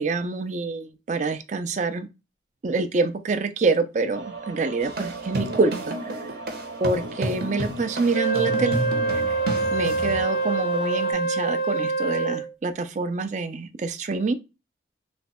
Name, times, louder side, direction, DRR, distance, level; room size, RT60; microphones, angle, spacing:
voice 1, 0.0-2.1 2.6-6.3 6.8-8.8 9.1-9.4 9.7-14.4, right 3 dB, 40° right, 0.4 m, -26 dB
sound 1, 4.1-11.1, right 3 dB, 80° right, 1.0 m, -39 dB
sound 2, 4.8-10.2, right 1 dB, 60° right, 0.8 m, -31 dB
Wind instrument woodwind instrument, 8.1-12.5, right 3 dB, 55° left, 0.4 m, -25 dB
3.2 x 2.2 x 4.1 m
head